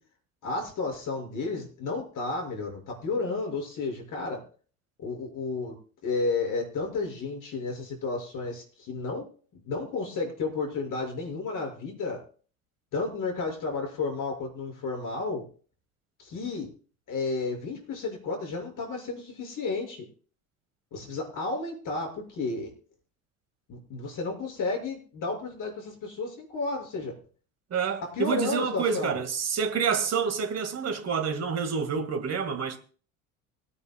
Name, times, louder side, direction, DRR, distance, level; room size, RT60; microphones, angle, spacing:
voice 1, 0.4-4.4 5.0-5.7 6.0-9.3 9.6-12.2 12.9-15.4 16.2-16.7 17.1-20.0 20.9-22.7 23.7-27.2 28.0-29.2, left 3 dB, 50° left, 6.7 m, -32 dB
voice 2, 27.7-32.8, right 6 dB, 40° right, 2.3 m, -28 dB
24.5 x 9.8 x 2.4 m
hypercardioid pair, 70°, 41 cm